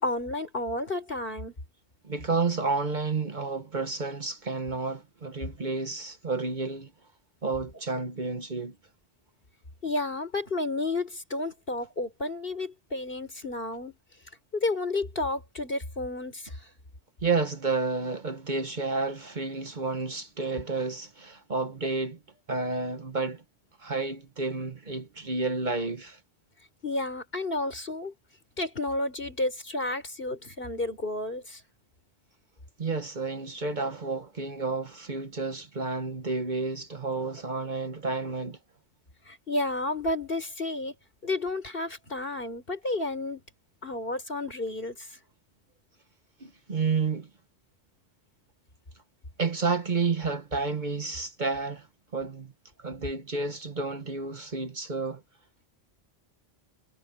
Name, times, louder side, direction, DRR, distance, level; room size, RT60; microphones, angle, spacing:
voice 1, 0.0-1.5 9.8-14.0 14.5-16.5 26.8-28.1 28.6-31.6 39.3-40.9 41.2-43.4 43.8-45.1, left 2 dB, 55° left, 4.7 m, -31 dB
voice 2, 2.0-6.9 7.4-8.7 17.2-22.2 22.5-23.4 23.8-26.2 32.8-38.6 46.4-47.3 49.4-51.9 52.1-52.5 52.8-55.2, right 4 dB, 45° right, 1.3 m, -30 dB
omnidirectional pair, 1.1 m